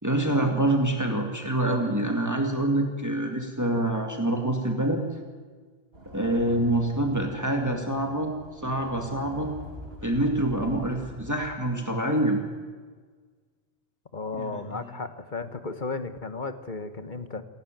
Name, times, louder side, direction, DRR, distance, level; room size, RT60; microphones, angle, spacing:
voice 1, 0.0-5.0 6.1-8.3 8.6-9.5 10.0-12.4 14.4-14.5, right 1 dB, 15° right, 3 dB, 2.2 m, -26 dB
sound 1, 5.9-11.3, equal, 70° right, 3.5 m, -45 dB
voice 2, 14.1-17.4, left 3 dB, 45° left, 10 dB, 1.4 m, -34 dB
28.5 x 12.0 x 9.2 m, 1.5 s
omnidirectional pair, 1.1 m